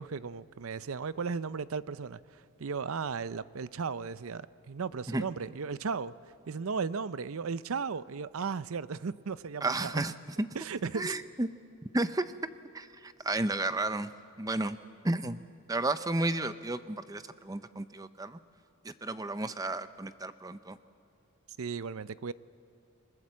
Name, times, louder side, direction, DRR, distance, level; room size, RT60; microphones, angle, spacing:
voice 1, 0.0-6.1 6.5-9.9 10.5-11.1 21.6-22.3, right 5 dB, 75° right, 16 dB, 0.6 m, -36 dB
voice 2, 9.6-10.5 10.9-11.5 11.9-12.3 12.7-14.1 14.4-14.8 15.0-15.4 15.7-18.4 18.8-20.8, right 2 dB, 15° right, 12 dB, 0.6 m, -32 dB
28.0 x 20.5 x 7.5 m, 2.5 s
head